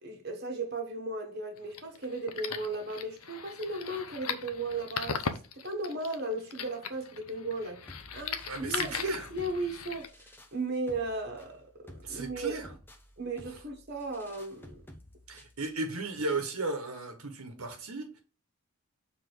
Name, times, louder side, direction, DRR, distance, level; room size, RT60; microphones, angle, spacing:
voice 1, 0.0-5.2 5.5-7.8 8.1-10.1 10.5-11.7 11.9-12.6 13.2-14.8, right 2 dB, 45° right, 1.4 m, -36 dB
sound 1, 1.6-10.1, left 6 dB, 90° left, 0.8 m, -39 dB
sound 2, 7.9-15.9, equal, 10° left, 0.7 m, -53 dB
voice 2, 8.4-9.3 12.0-12.7 15.3-18.2, right 3 dB, 80° right, 1.4 m, -35 dB
6.8 x 3.7 x 4.6 m
head